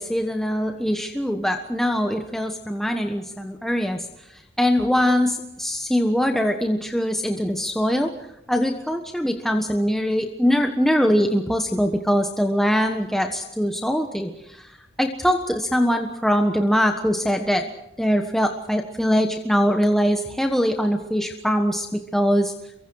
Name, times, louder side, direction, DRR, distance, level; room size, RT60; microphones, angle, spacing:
voice 1, 0.0-4.1 4.6-8.1 8.5-17.7 18.0-22.5, equal, ahead, 4 dB, 1.3 m, -22 dB
29.5 x 24.0 x 4.8 m, 0.86 s
head